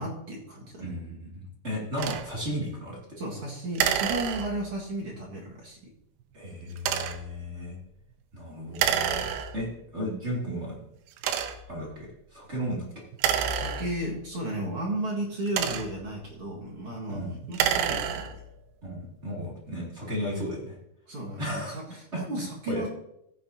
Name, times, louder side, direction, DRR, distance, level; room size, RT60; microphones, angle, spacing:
voice 1, 0.0-0.8 3.2-5.9 13.5-17.2 17.5-18.3 21.1-22.9, right 1 dB, 60° right, -3 dB, 1.4 m, -34 dB
voice 2, 0.8-3.0 6.3-7.8 8.3-9.3 9.5-10.8 11.7-12.9 17.1-17.4 18.8-20.7 21.4-21.8 22.1-22.2 22.7-22.8, equal, 25° right, -4 dB, 1.5 m, -34 dB
sound 1, 2.0-2.3 3.8-4.8 6.8-7.3 8.8-9.8 10.4-10.5 11.2-11.8 13.1-14.3 15.2-16.1 17.4-18.5, right 9 dB, 85° right, 2.3 m, -28 dB
16.0 x 9.6 x 2.8 m, 0.79 s
omnidirectional pair, 5.4 m